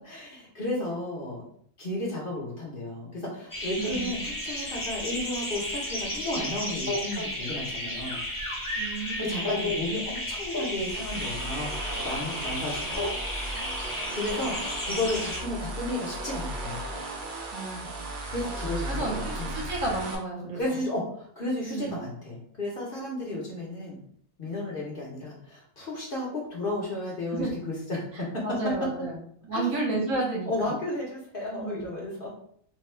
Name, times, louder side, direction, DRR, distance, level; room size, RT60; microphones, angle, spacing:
voice 1, 0.0-1.5 1.8-8.2 9.2-11.7 12.0-13.1 14.1-16.8 18.3-19.6 20.5-24.0 24.4-28.3 28.6-28.7 29.5-29.7 30.4-32.3, left 1 dB, 45° left, -3 dB, 0.9 m, -33 dB
sound 1, 3.5-15.4, left 1 dB, 20° left, 0.6 m, -33 dB
voice 2, 3.8-4.1 8.8-9.5 17.5-18.0 18.9-20.8 21.6-22.0 27.3-27.6 28.1-29.2 29.4-30.7 31.6-31.9, right 2 dB, 70° right, -2 dB, 1.3 m, -32 dB
sound 2, 10.8-20.2, right 2 dB, 55° right, 0.6 m, -36 dB
3.6 x 2.2 x 3.2 m, 0.63 s
omnidirectional pair, 1.5 m